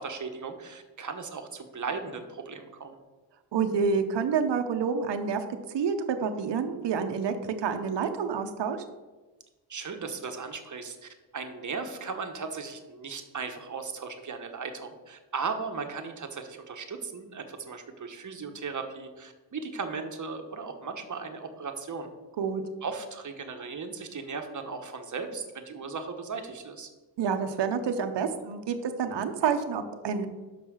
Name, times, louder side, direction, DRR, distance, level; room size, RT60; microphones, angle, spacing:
voice 1, 0.0-3.0 9.7-22.1 22.8-26.9, right 5 dB, 40° right, 6 dB, 1.1 m, -37 dB
voice 2, 3.5-5.4 5.7-8.8 22.4-22.6 27.2-30.3, right 6 dB, 65° right, 7 dB, 0.8 m, -28 dB
5.9 x 5.5 x 6.3 m, 1.2 s
cardioid pair, 90°, 45 cm